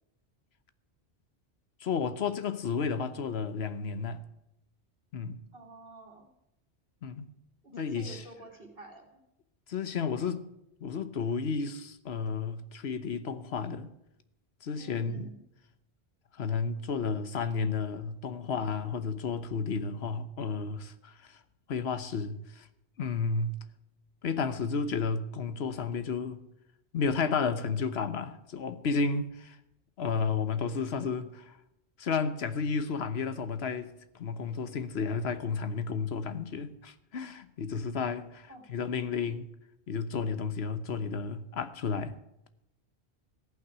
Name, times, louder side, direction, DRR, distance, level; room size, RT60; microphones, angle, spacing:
voice 1, 1.8-4.2 5.1-5.4 7.0-7.3 7.7-8.2 9.7-10.5 10.8-13.9 14.6-15.3 16.3-21.4 21.7-22.7 23.0-23.6 24.2-26.4 26.9-29.6 30.0-31.6 32.0-39.5 39.9-42.2, left 5 dB, 75° left, 1.1 m, -32 dB
voice 2, 5.5-6.3 7.6-9.2 14.8-15.4 38.5-38.7, right 2 dB, 60° right, 2.4 m, -49 dB
14.5 x 5.9 x 9.4 m
omnidirectional pair, 1.1 m